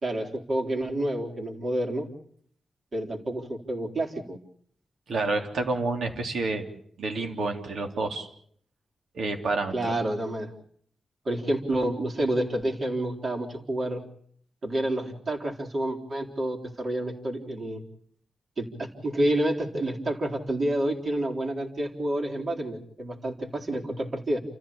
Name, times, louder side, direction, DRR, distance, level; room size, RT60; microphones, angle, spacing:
voice 1, 0.0-2.1 2.9-4.4 9.7-10.5 11.3-14.0 14.6-17.8 18.6-24.4, right 1 dB, 45° right, 1 dB, 3.8 m, -29 dB
voice 2, 5.1-6.6 7.0-8.3 9.1-9.9, right 3 dB, 80° right, 4 dB, 3.3 m, -29 dB
29.0 x 14.5 x 8.6 m, 0.63 s
wide cardioid pair, 135°, 0 cm